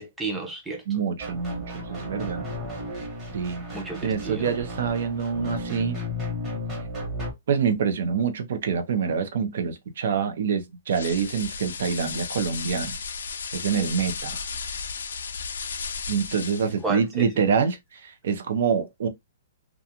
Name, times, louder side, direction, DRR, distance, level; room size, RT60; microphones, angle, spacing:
voice 1, 0.0-0.8 3.7-4.5 16.8-17.3, right 3 dB, 5° right, 0.6 m, -32 dB
voice 2, 0.9-2.5 3.3-3.6 4.0-6.0 7.5-13.0 13.5-14.4 16.1-19.1, right 6 dB, 60° right, 0.6 m, -26 dB
sound 1, 1.2-7.3, left 1 dB, 20° right, 1.1 m, -34 dB
sound 2, 10.9-16.8, left 5 dB, 80° left, 0.4 m, -34 dB
2.4 x 2.4 x 2.7 m
hypercardioid pair, 165°, 0 cm